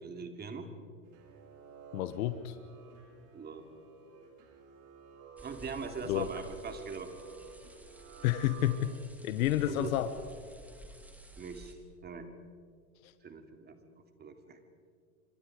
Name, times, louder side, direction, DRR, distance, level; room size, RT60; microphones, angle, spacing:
voice 1, 0.0-0.7 3.3-3.6 5.4-7.1 9.7-9.9 11.4-11.8 12.0-12.3 13.2-13.8 14.2-14.6, right 5 dB, 20° right, 5 dB, 2.9 m, -41 dB
sound 1, 1.0-9.3, right 6 dB, 45° right, 5.1 m, -53 dB
voice 2, 1.9-2.5 6.0-6.3 8.2-8.9 9.2-10.1 13.0-13.1, left 13 dB, 70° left, 11 dB, 1.3 m, -30 dB
sound 2, 5.4-11.7, equal, 5° right, 2.7 m, -53 dB
27.0 x 25.0 x 5.0 m, 2.1 s
hypercardioid pair, 120°, 44 cm